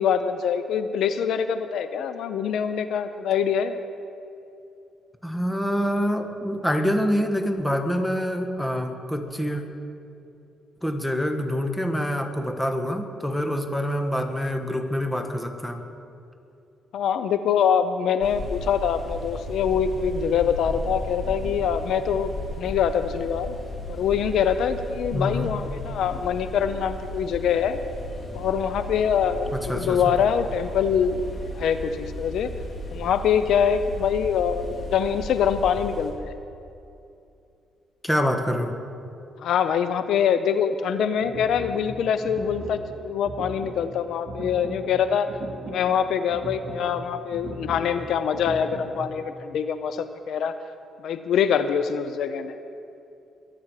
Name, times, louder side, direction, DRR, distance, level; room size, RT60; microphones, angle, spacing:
voice 1, 0.0-3.7 16.9-22.3 22.6-23.6 23.9-27.8 28.3-31.2 31.5-32.5 32.9-36.3 39.4-45.3 45.7-50.5 51.0-52.5, left 7 dB, 75° left, 10 dB, 0.6 m, -24 dB
voice 2, 5.2-9.6 10.8-15.8 25.1-25.5 29.5-30.0 38.0-38.8, equal, 5° left, 5 dB, 1.5 m, -26 dB
sound 1, 18.2-36.1, left 1 dB, 40° left, 3.0 m, -35 dB
sound 2, 41.0-49.1, right 1 dB, 55° right, 4.3 m, -38 dB
23.0 x 9.7 x 4.9 m, 2.7 s
cardioid pair, 90°, 0 cm